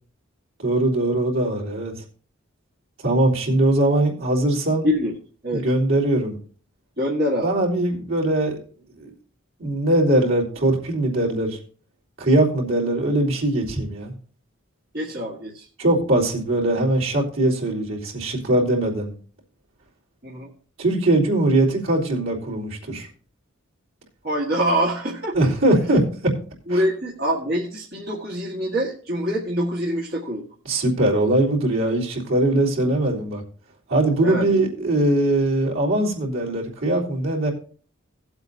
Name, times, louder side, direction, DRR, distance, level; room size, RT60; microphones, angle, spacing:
voice 1, 0.6-1.9 3.0-4.9 5.5-6.4 7.4-8.6 9.0-9.1 9.6-11.6 12.2-14.1 15.8-19.1 20.8-23.1 25.3-26.3 26.7-26.8 30.7-33.4 33.9-37.5, right 1 dB, 75° right, -4 dB, 3.6 m, -21 dB
voice 2, 7.0-7.5 14.9-15.6 20.2-20.5 24.2-25.3 26.7-30.4 34.2-34.5, equal, 50° right, -3 dB, 1.7 m, -25 dB
18.0 x 8.0 x 2.8 m, 0.42 s
head